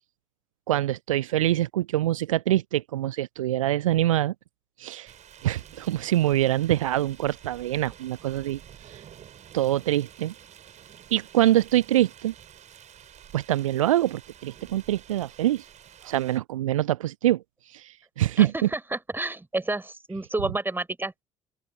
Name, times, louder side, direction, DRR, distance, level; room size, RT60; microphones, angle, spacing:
voice 1, 0.7-4.3 4.8-5.1 5.4-9.0 9.5-10.3 11.1-12.3 13.3-15.7 16.0-18.5, right 13 dB, 75° right, 0.5 m, -25 dB
sound 1, 5.1-16.4, right 9 dB, 45° right, 6.4 m, -50 dB
voice 2, 18.4-21.2, right 2 dB, 10° right, 4.5 m, -30 dB
open air
figure-of-eight pair, 55°, 17 cm